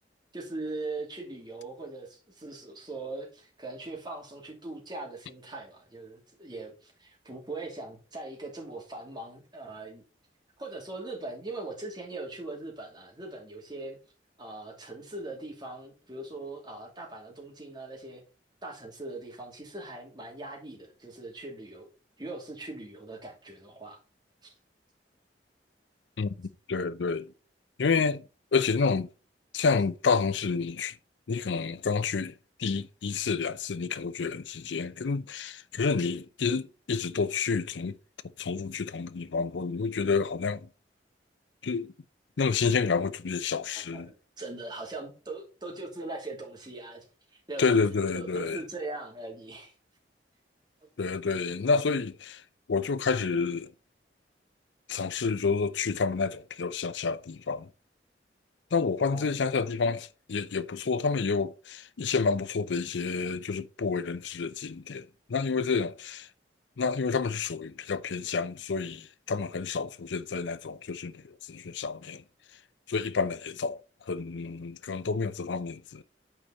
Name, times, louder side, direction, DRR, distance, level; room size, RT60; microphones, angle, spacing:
voice 1, 0.3-10.0 10.6-14.0 14.4-18.2 18.6-21.9 22.2-24.0 24.4-24.5 43.8-47.1 47.3-47.8 48.1-49.7 50.8-50.9 59.1-59.5, right 2 dB, 25° right, 2.6 m, -40 dB
voice 2, 26.2-27.3 27.8-28.2 28.5-29.1 29.5-31.0 31.3-38.0 38.4-40.7 41.6-41.9 42.4-44.1 47.6-48.6 51.0-52.4 52.7-53.7 54.9-57.7 58.7-66.3 66.8-72.2 72.9-73.8 74.1-76.0, left 5 dB, 85° left, 0.5 m, -29 dB
9.0 x 5.0 x 4.0 m
head